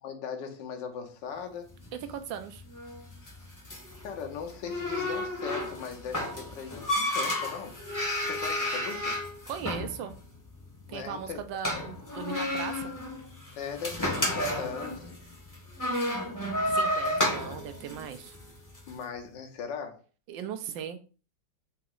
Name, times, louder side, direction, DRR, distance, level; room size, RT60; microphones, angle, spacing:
voice 1, 0.0-1.8 4.0-7.7 8.2-9.2 10.9-11.4 13.6-15.1 18.9-20.0, left 6 dB, 75° left, 1.5 m, -39 dB
sound 1, 1.7-18.9, left 1 dB, 15° left, 0.7 m, -32 dB
voice 2, 2.1-2.6 9.5-10.1 10.9-12.9 16.7-18.4 20.3-21.0, right 8 dB, 80° right, 1.3 m, -38 dB
4.1 x 2.9 x 3.7 m
omnidirectional pair, 2.0 m